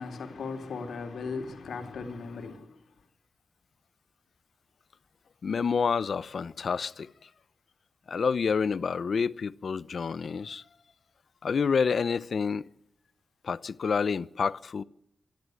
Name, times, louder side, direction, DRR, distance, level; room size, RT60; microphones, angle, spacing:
voice 1, 0.0-2.6, left 4 dB, 80° left, 3.6 m, -37 dB
voice 2, 5.4-7.1 8.1-10.6 11.4-12.6 13.4-14.8, left 5 dB, 55° left, 0.7 m, -28 dB
25.5 x 12.0 x 9.5 m
wide cardioid pair, 155°, 0 cm